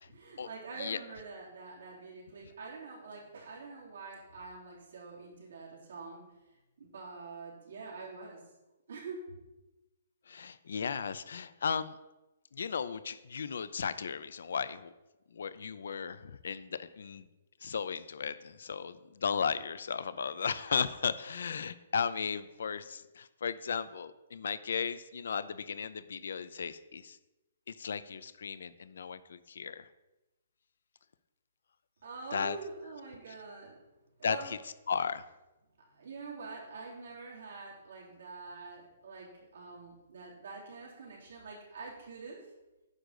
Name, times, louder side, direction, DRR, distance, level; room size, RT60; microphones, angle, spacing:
voice 1, 0.1-6.2 6.8-8.4 8.9-9.2 32.0-33.8 34.2-34.4 35.9-42.4, right 4 dB, 55° right, -4 dB, 3.4 m, -45 dB
voice 2, 10.3-11.9 12.5-14.9 15.3-17.3 17.6-27.2 27.7-29.9 32.3-32.6 34.2-34.6 34.9-35.2, left 6 dB, 65° left, 15 dB, 0.5 m, -35 dB
9.7 x 3.9 x 6.5 m, 1.0 s
hypercardioid pair, 180°, 0 cm